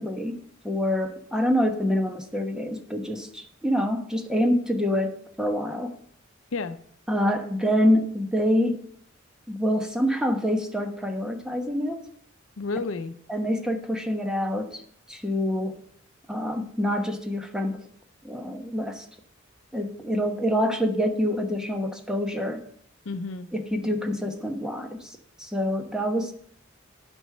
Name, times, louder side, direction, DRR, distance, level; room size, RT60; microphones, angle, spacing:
voice 1, 0.0-5.9 7.1-8.8 9.5-12.0 13.3-14.8 15.1-15.8 16.3-17.8 18.2-19.0 19.7-22.6 23.5-26.3, equal, 5° right, 4 dB, 1.1 m, -26 dB
voice 2, 12.6-13.2 23.0-23.5, left 3 dB, 80° left, 11 dB, 0.6 m, -31 dB
9.9 x 5.3 x 7.6 m, 0.63 s
head